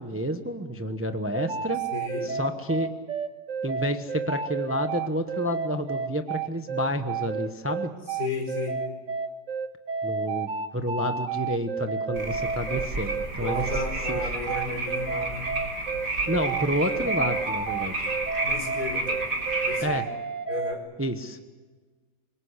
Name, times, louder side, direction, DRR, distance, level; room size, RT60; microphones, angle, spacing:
voice 1, 0.0-1.8 2.2-2.9 3.6-7.9 10.0-13.6 14.1-14.3 16.3-18.1 19.8-20.1 21.0-21.4, equal, 10° right, 7 dB, 0.9 m, -29 dB
sound 1, 1.3-20.7, right 5 dB, 50° right, 1.5 m, -31 dB
voice 2, 1.9-2.3 8.1-8.8 13.4-15.5 18.4-19.2 19.7-20.0 20.5-20.9, left 3 dB, 70° left, 3 dB, 5.1 m, -33 dB
sound 2, 12.2-19.8, right 2 dB, 80° right, 4.1 m, -31 dB
25.0 x 22.5 x 8.3 m, 1.4 s
omnidirectional pair, 1.7 m